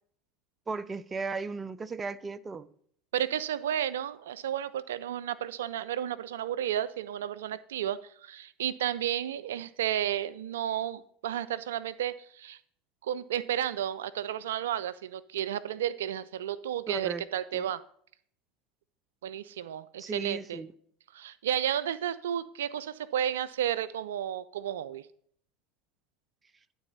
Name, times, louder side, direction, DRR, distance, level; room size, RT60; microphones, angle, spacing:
voice 1, 0.7-2.7 16.9-17.2 17.5-17.7 20.0-20.7, right 4 dB, 25° right, 0.5 m, -36 dB
voice 2, 3.1-12.6 13.0-17.8 19.2-20.6 21.1-25.1, right 10 dB, 80° right, 0.3 m, -32 dB
12.0 x 4.0 x 5.4 m
hypercardioid pair, 80°, 0 cm